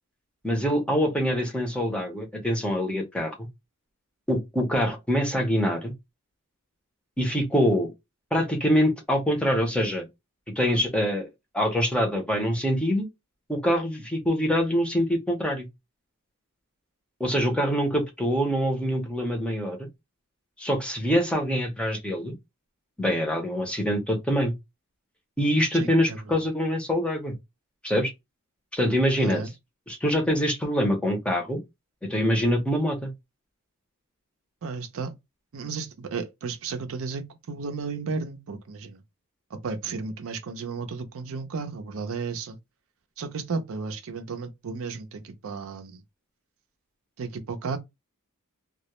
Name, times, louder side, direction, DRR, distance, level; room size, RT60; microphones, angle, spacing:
voice 1, 0.4-3.5 4.3-5.9 7.2-7.9 8.3-10.1 10.6-11.3 11.5-13.1 13.5-15.7 17.2-19.9 20.6-22.3 23.0-24.5 25.4-27.3 27.8-28.1 28.7-29.4 29.9-31.6 32.1-33.1, equal, 5° left, 0.6 m, -25 dB
voice 2, 25.7-26.2 29.2-29.5 34.6-35.1 35.5-39.0 39.5-42.6 43.2-46.0 47.2-47.8, right 4 dB, 65° right, 0.5 m, -33 dB
2.3 x 2.0 x 2.9 m
head